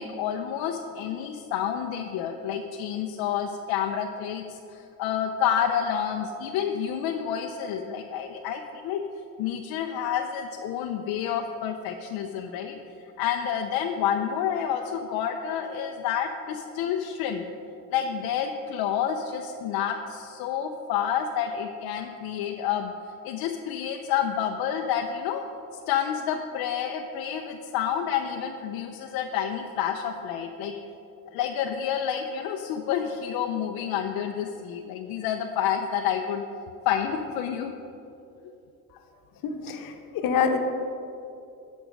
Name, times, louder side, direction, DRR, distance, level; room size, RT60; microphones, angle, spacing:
voice 1, 0.0-9.1 9.4-12.8 13.2-17.4 17.9-22.9 23.2-25.4 25.7-30.7 31.3-36.4 36.9-37.7, left 8 dB, 80° left, 3 dB, 0.7 m, -29 dB
voice 2, 39.4-40.6, left 6 dB, 65° left, 5 dB, 1.1 m, -26 dB
11.0 x 6.3 x 5.2 m, 2.7 s
cardioid pair, 140°, 37 cm